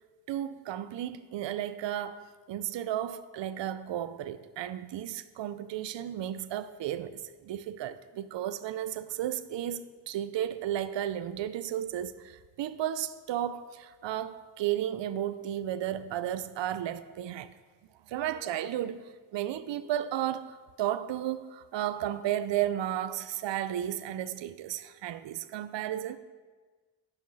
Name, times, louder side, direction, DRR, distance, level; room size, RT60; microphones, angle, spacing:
voice 1, 0.3-17.5 18.1-26.2, right 11 dB, 60° right, 0.6 m, -33 dB
10.0 x 5.5 x 4.7 m
cardioid pair, 50°, 50 cm